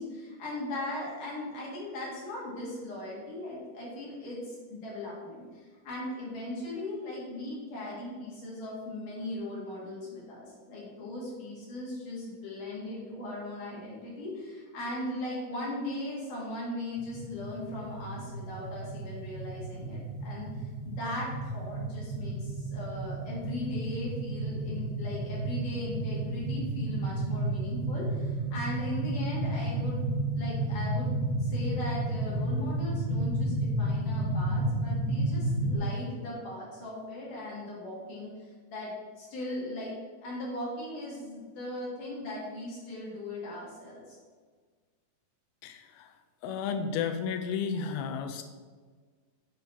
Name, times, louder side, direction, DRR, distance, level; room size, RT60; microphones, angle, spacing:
voice 1, 0.0-30.0 30.4-31.1 31.4-38.9 39.2-39.9 40.2-44.2, left 1 dB, 60° left, -5 dB, 3.3 m, -38 dB
sound 1, 17.0-35.8, right 1 dB, 45° right, 1.0 m, -32 dB
voice 2, 45.6-46.2 46.4-48.4, left 6 dB, 90° left, 7 dB, 2.5 m, -33 dB
7.5 x 3.8 x 5.4 m, 1.5 s
omnidirectional pair, 4.3 m